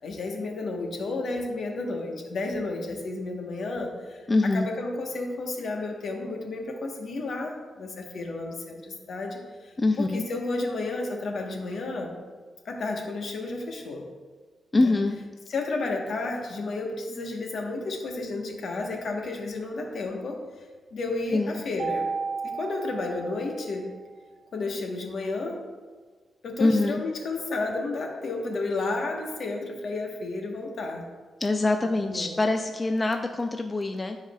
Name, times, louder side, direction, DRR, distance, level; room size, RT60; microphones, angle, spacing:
voice 1, 0.0-12.1 12.6-14.0 14.7-14.9 15.5-20.5 20.9-22.1 22.4-23.9 24.5-25.7 26.4-31.1 32.0-32.4, left 3 dB, 65° left, 2 dB, 1.1 m, -32 dB
voice 2, 4.3-4.7 9.8-10.2 14.7-15.2 21.3-21.6 26.6-27.0 31.4-34.2, left 2 dB, 25° left, 5 dB, 0.3 m, -24 dB
Mallet percussion, 21.8-24.0, right 5 dB, 50° right, 0.4 m, -33 dB
13.0 x 4.7 x 2.3 m, 1.4 s
cardioid pair, 110°, 0 cm